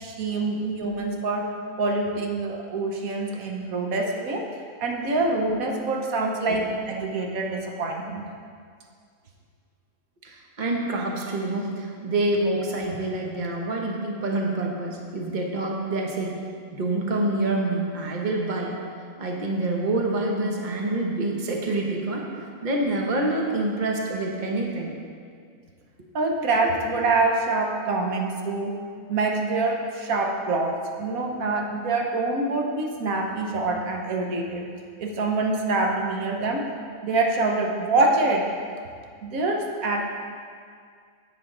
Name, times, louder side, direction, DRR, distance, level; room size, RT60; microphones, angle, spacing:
voice 1, 0.0-1.5 1.8-4.5 4.8-8.2 26.1-28.8 29.1-34.7 35.0-36.6 37.0-38.5 39.2-40.0, right 3 dB, 85° right, 1 dB, 1.4 m, -25 dB
voice 2, 10.2-16.4 16.7-18.7 19.2-22.3 22.6-24.9, right 2 dB, 35° right, 0 dB, 1.2 m, -27 dB
10.5 x 8.2 x 3.8 m, 2.1 s
omnidirectional pair, 1.4 m